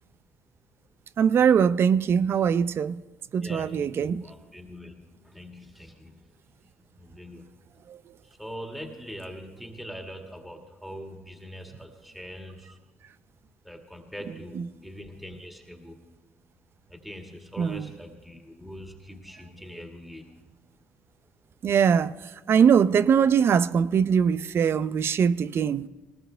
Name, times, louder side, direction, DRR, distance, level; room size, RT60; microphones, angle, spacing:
voice 1, 1.2-3.0 3.3-4.2 7.9-8.0 17.6-17.9 21.6-22.1 22.5-25.9, right 7 dB, 55° right, 0.5 m, -21 dB
voice 2, 3.3-6.3 7.0-7.6 8.2-12.8 13.6-16.0 16.9-20.4, equal, ahead, 2.1 m, -42 dB
19.5 x 19.0 x 3.4 m
supercardioid pair, 70°, 5 cm